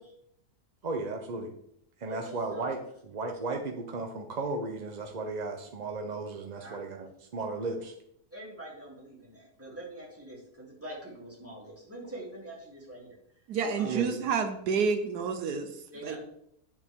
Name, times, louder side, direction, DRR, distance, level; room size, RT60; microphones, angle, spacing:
voice 1, 0.8-1.5 2.0-2.8 3.1-7.9 13.8-14.2, right 3 dB, 40° right, 4 dB, 0.6 m, -35 dB
voice 2, 2.1-2.6 6.6-6.8 8.3-13.2 13.8-14.0 15.9-16.2, right 1 dB, 10° right, -5 dB, 3.0 m, -44 dB
voice 3, 13.5-15.7 16.0-16.2, right 5 dB, 80° right, 7 dB, 1.4 m, -29 dB
10.5 x 7.1 x 3.6 m, 0.74 s
omnidirectional pair, 1.7 m